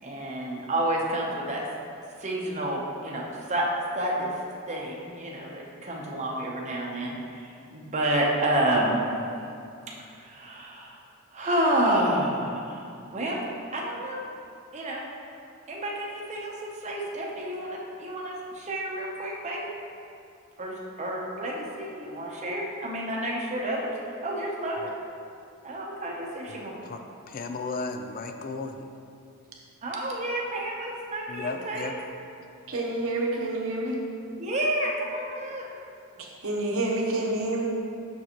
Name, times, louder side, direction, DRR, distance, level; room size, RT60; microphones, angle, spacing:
voice 1, 0.0-1.6 2.2-3.7 3.9-4.3 4.7-7.5 7.7-9.0 10.2-11.0 11.3-12.8 13.1-13.4 13.7-14.2 14.7-15.0 15.7-19.7 20.6-23.9 24.2-24.9 25.6-26.7 29.8-31.9 34.4-35.7, right 1 dB, 30° right, -2 dB, 0.8 m, -29 dB
voice 2, 26.5-27.0 27.3-28.9 31.3-32.0, left 3 dB, 40° left, 6 dB, 0.4 m, -35 dB
voice 3, 32.7-34.0 36.2-37.7, right 2 dB, 65° right, -1 dB, 0.9 m, -28 dB
6.5 x 6.0 x 2.9 m, 2.5 s
head